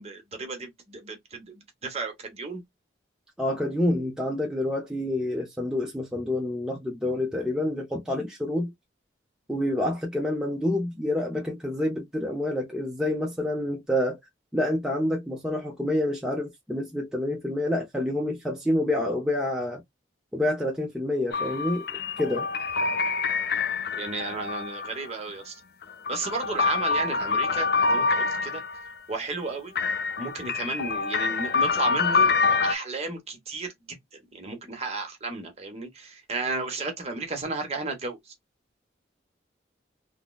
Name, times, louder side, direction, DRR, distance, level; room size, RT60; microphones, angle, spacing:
voice 1, 0.0-2.6 23.9-25.6 26.1-28.6 29.1-29.7 30.2-32.3 32.6-38.3, right 3 dB, 35° right, 0.9 m, -33 dB
voice 2, 3.4-8.7 9.5-14.2 14.5-19.8 20.3-21.8 22.2-22.5, left 1 dB, 5° right, 0.5 m, -28 dB
sound 1, 21.3-25.1 25.8-28.9 29.8-32.7, left 4 dB, 55° left, 0.4 m, -26 dB
3.6 x 2.0 x 2.2 m
head